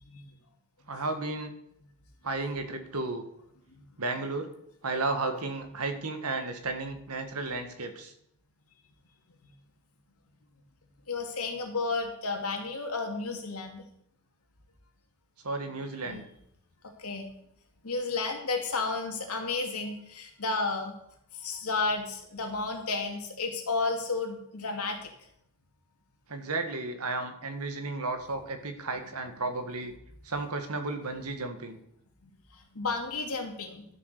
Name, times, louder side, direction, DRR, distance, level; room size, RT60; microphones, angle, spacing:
voice 1, 0.9-1.5 2.2-3.2 4.0-4.5 4.8-8.1 15.4-16.3 26.3-29.9 30.2-31.8, right 3 dB, 85° right, 7 dB, 1.7 m, -33 dB
voice 2, 11.1-13.9 15.8-16.3 16.8-17.3 17.8-21.0 21.4-25.1 32.2-32.3 32.7-33.9, left 3 dB, 80° left, 3 dB, 2.5 m, -32 dB
12.5 x 7.3 x 6.7 m, 0.74 s
head